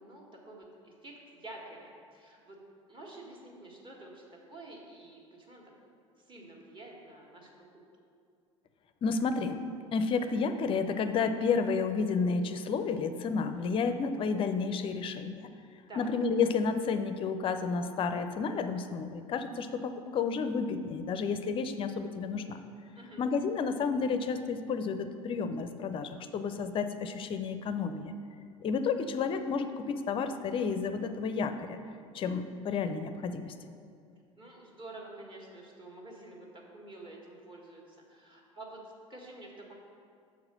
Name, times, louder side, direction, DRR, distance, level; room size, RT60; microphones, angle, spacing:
voice 1, 0.0-2.6 2.9-5.7 6.2-7.5 15.9-16.1 22.9-23.2 34.3-38.8 39.1-39.7, right 2 dB, 30° right, -1 dB, 1.6 m, -49 dB
voice 2, 9.0-9.6 9.9-15.5 16.0-22.6 23.2-28.1 28.6-31.8 32.1-33.5, left 5 dB, 30° left, 9 dB, 0.5 m, -31 dB
6.9 x 4.8 x 6.1 m, 2.3 s
figure-of-eight pair, 70°, 17 cm